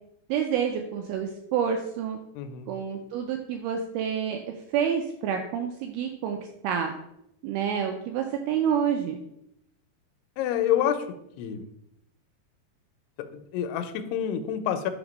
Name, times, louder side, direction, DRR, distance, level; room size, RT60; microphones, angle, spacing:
voice 1, 0.3-2.2 2.7-4.4 4.7-6.9 7.4-9.2, right 8 dB, 80° right, 4 dB, 2.3 m, -28 dB
voice 2, 2.3-2.7 10.4-11.1 11.4-11.7 13.2-14.9, left 10 dB, 85° left, 9 dB, 2.6 m, -28 dB
5.9 x 3.6 x 5.1 m, 0.80 s
omnidirectional pair, 4.7 m